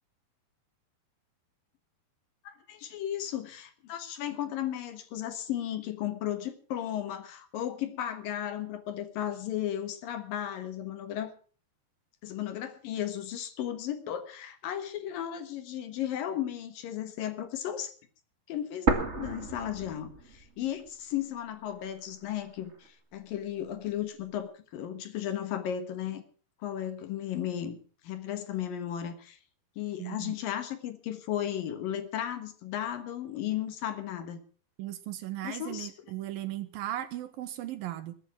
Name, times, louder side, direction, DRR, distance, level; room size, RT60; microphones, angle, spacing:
voice 1, 2.4-11.3 12.2-17.9 18.5-26.2 26.6-27.8 28.0-29.4 29.8-34.4 35.4-35.9, left 11 dB, 65° left, 10 dB, 2.9 m, -35 dB
sound 1, 18.9-20.8 21.1-21.2 21.9-22.9, right 4 dB, 30° right, 1.2 m, -31 dB
voice 2, 30.0-30.3 34.8-38.1, right 13 dB, 75° right, 12 dB, 2.4 m, -37 dB
21.5 x 10.0 x 6.0 m, 0.41 s
omnidirectional pair, 4.6 m